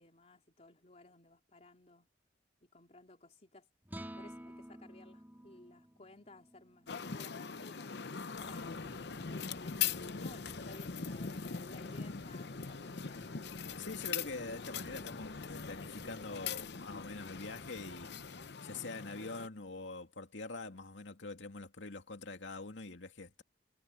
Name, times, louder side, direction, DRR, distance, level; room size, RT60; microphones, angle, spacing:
voice 1, 0.0-2.1 2.6-3.7 4.2-9.8 10.2-13.3, left 2 dB, 35° left, 3.6 m, -58 dB
sound 1, 3.8-10.2, equal, 10° right, 3.6 m, -53 dB
sound 2, 6.9-19.5, left 6 dB, 65° left, 0.8 m, -41 dB
sound 3, 8.3-18.5, equal, 30° right, 3.9 m, -58 dB
voice 2, 13.8-18.1 18.6-23.4, left 3 dB, 85° left, 2.4 m, -44 dB
head